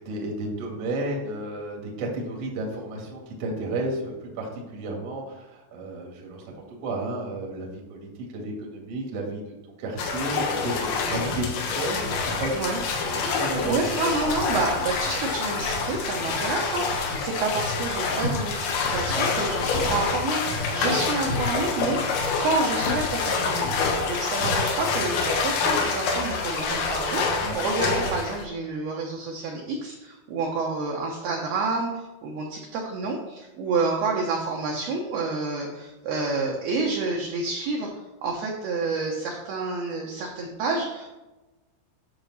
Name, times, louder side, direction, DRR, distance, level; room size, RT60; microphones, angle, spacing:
voice 1, 0.0-6.5 6.8-13.8 16.7-16.9 27.4-27.6, right 2 dB, 55° right, -1 dB, 1.7 m, -32 dB
sound 1, 10.0-28.4, left 4 dB, 85° left, 4.2 m, -27 dB
sound 2, 11.3-24.5, left 1 dB, 60° left, 2.0 m, -35 dB
voice 2, 13.7-22.0 22.4-37.9 38.2-41.1, right 3 dB, 75° right, -1 dB, 2.4 m, -29 dB
10.0 x 6.9 x 4.1 m, 1.1 s
omnidirectional pair, 5.8 m